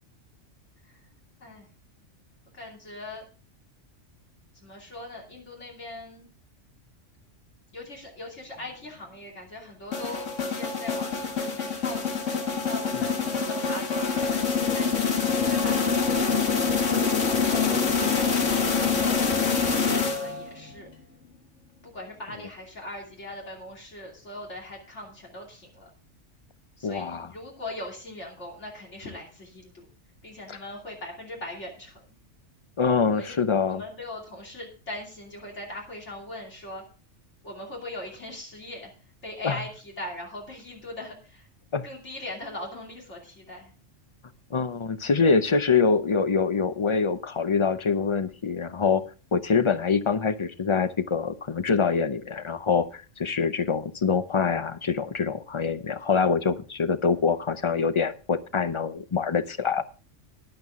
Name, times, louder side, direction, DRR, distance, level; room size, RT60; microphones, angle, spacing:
voice 1, 2.5-3.2 4.5-6.3 7.7-12.2 12.6-16.9 17.3-20.9 21.8-25.9 26.8-29.8 30.2-32.1 33.1-33.4 33.6-36.8 37.4-38.9 39.2-41.5 41.8-43.7, left 1 dB, 70° left, -2 dB, 3.1 m, -40 dB
sound 1, 9.9-20.6, left 5 dB, 85° left, 1.9 m, -25 dB
voice 2, 26.8-27.3 30.5-30.6 32.8-33.8 39.4-39.6 41.7-41.9 44.5-49.0 49.3-59.8, left 5 dB, 35° left, 12 dB, 0.6 m, -25 dB
12.0 x 11.0 x 3.6 m, 0.37 s
omnidirectional pair, 1.3 m